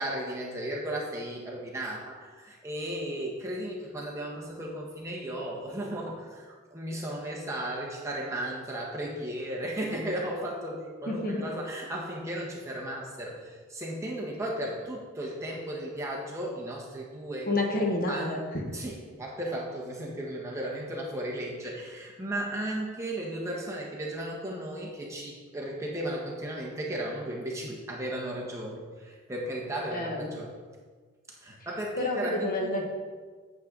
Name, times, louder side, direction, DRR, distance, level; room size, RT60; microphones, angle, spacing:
voice 1, 0.0-17.5 17.8-18.3 18.7-30.5 31.4-32.8, right 1 dB, 15° right, -3 dB, 1.4 m, -35 dB
voice 2, 11.1-11.4 17.4-18.6 29.9-30.3 32.0-32.9, left 2 dB, 45° left, 1 dB, 1.2 m, -29 dB
9.0 x 7.9 x 4.0 m, 1.5 s
head